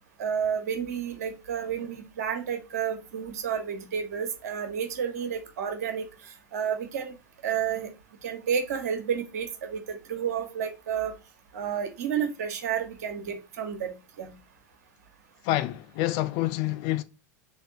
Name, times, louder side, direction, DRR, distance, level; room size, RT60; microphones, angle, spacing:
voice 1, 0.2-6.0 6.5-7.1 7.4-7.9 8.2-11.1 11.5-13.9 14.2-14.3, right 7 dB, 65° right, 1.0 m, -31 dB
voice 2, 15.4-17.0, left 15 dB, 50° left, 0.4 m, -27 dB
3.4 x 2.7 x 3.9 m
figure-of-eight pair, 85°, 9 cm